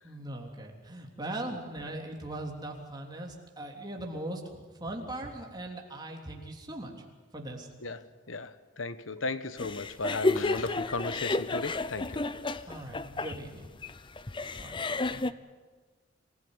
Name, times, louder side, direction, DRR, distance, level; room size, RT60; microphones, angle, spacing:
voice 1, 0.0-7.0 7.3-7.7 12.7-13.6 14.6-14.7 15.1-15.2, right 1 dB, 20° right, 3.3 m, -40 dB
voice 2, 7.8-12.2, left 3 dB, 85° left, 1.2 m, -36 dB
sound 1, 9.6-15.3, left 2 dB, 25° left, 0.6 m, -31 dB
26.5 x 16.0 x 9.8 m
head